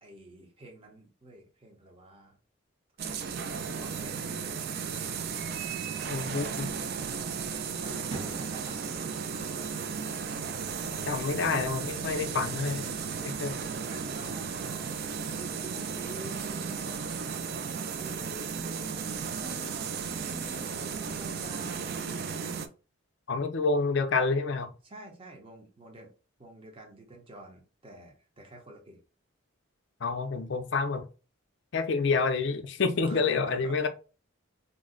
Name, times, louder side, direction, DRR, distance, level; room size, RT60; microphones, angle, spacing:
voice 1, 0.0-2.4 3.4-4.7 7.5-8.8 9.1-9.7 11.5-11.7 13.5-17.6 18.0-22.5 24.8-26.1 26.4-29.0 33.0-33.9, right 2 dB, 25° right, 0.7 m, -48 dB
sound 1, 3.0-22.7, right 6 dB, 45° right, 0.3 m, -35 dB
voice 2, 6.1-6.7 11.1-12.9 13.2-13.5 23.3-24.7 30.0-31.1 31.7-33.9, left 4 dB, 55° left, 0.4 m, -28 dB
Thunder / Rain, 7.1-16.1, right 3 dB, 65° right, 0.8 m, -49 dB
2.6 x 2.1 x 3.7 m
head